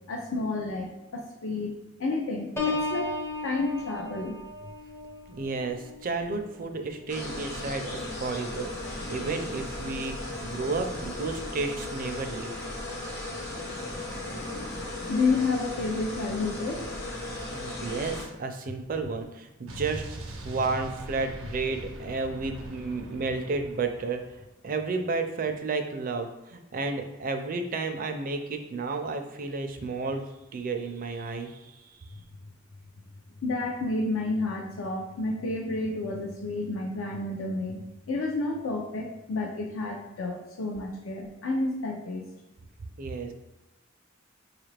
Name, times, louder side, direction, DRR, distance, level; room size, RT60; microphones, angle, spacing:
voice 1, 0.1-1.7 2.0-3.1 3.4-4.4 14.8-16.9 33.4-42.3, left 3 dB, 75° left, 1 dB, 0.5 m, -30 dB
Piano, 2.6-8.2 8.7-9.0, left 3 dB, 15° left, 0.5 m, -36 dB
voice 2, 5.3-12.5 17.5-20.0 20.4-24.2 24.6-30.2 30.5-32.0 43.0-43.3, right 3 dB, 45° right, 6 dB, 0.4 m, -32 dB
sound 1, 7.1-18.2, left 1 dB, 55° left, 1.0 m, -36 dB
Explosion, 19.7-24.4, right 2 dB, 85° right, 0.6 m, -42 dB
4.6 x 2.4 x 3.2 m, 1.0 s
head